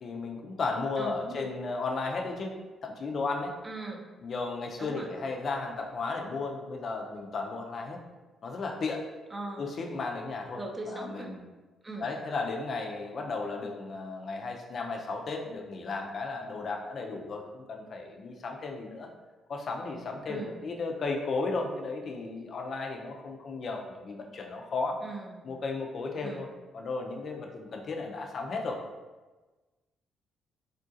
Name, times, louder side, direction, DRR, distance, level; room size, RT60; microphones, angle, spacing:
voice 1, 0.0-3.6 4.2-8.0 8.4-9.1 9.6-10.6 10.9-11.4 12.0-19.1 19.5-25.0 25.4-28.8, left 3 dB, 50° left, 2 dB, 0.5 m, -34 dB
voice 2, 1.0-1.5 3.6-4.0 4.8-5.1 9.3-9.7 10.6-11.3 11.8-12.1 20.3-20.6 25.0-25.5 26.2-26.5, right 2 dB, 20° right, 1 dB, 0.5 m, -39 dB
3.5 x 2.4 x 2.6 m, 1.2 s
cardioid pair, 90°, 0 cm